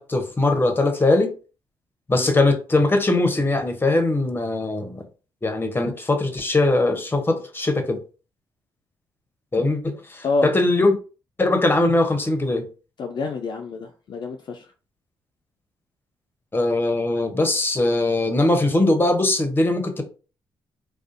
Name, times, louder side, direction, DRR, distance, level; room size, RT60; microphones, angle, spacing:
voice 1, 0.0-1.3 2.1-5.0 5.4-8.0 9.5-11.0 11.4-12.7 16.5-20.0, left 2 dB, 20° left, 0.7 m, -21 dB
voice 2, 13.0-14.7, left 3 dB, 50° left, 0.3 m, -27 dB
2.4 x 2.3 x 2.5 m
supercardioid pair, 50°, 10 cm